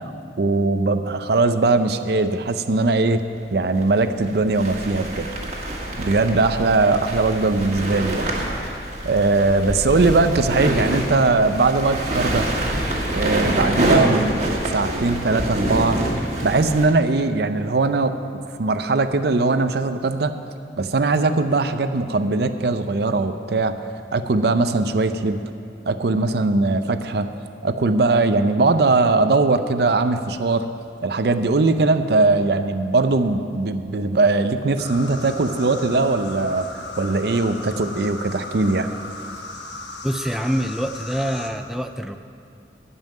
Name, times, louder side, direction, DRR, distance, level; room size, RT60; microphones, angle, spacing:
voice 1, 0.4-3.2 3.5-5.3 6.0-8.3 9.0-12.5 13.1-14.4 14.7-16.0 16.4-18.1 18.6-20.3 20.8-23.7 24.1-25.4 25.9-27.3 27.6-30.7 31.0-36.7 37.0-38.9, right 3 dB, 65° right, 10 dB, 0.6 m, -20 dB
sound 1, 2.9-3.0 3.8-16.9, right 1 dB, 40° right, 1.7 m, -26 dB
sound 2, 34.8-41.5, left 2 dB, 80° left, 1.2 m, -36 dB
voice 2, 40.0-42.2, equal, ahead, 6 dB, 0.3 m, -25 dB
12.5 x 5.6 x 9.2 m, 2.5 s
head